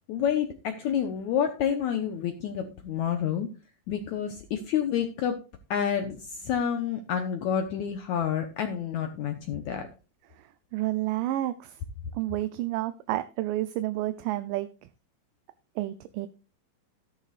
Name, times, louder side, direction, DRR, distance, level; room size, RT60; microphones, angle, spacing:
voice 1, 0.1-3.5 3.9-5.4 5.7-9.9, left 8 dB, 70° left, 6 dB, 2.0 m, -29 dB
voice 2, 10.3-11.8 12.1-14.9 15.8-16.3, right 15 dB, 80° right, 12 dB, 2.1 m, -30 dB
13.5 x 11.5 x 2.4 m, 0.31 s
omnidirectional pair, 4.0 m